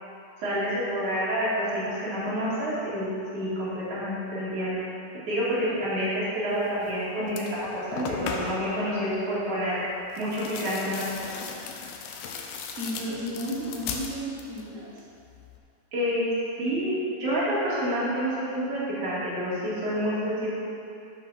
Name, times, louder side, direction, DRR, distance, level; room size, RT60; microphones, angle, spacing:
voice 1, 0.4-4.8 5.3-9.8 10.2-11.3 15.9-16.3 16.6-16.9 17.2-20.5, equal, 55° right, -9 dB, 3.6 m, -28 dB
sound 1, 6.8-7.0 7.3-8.8 10.1-14.7 15.0-15.6, left 5 dB, 80° left, 2.3 m, -37 dB
voice 2, 12.7-15.0, equal, 70° right, -6 dB, 0.7 m, -34 dB
7.9 x 5.9 x 5.9 m, 2.7 s
omnidirectional pair, 4.2 m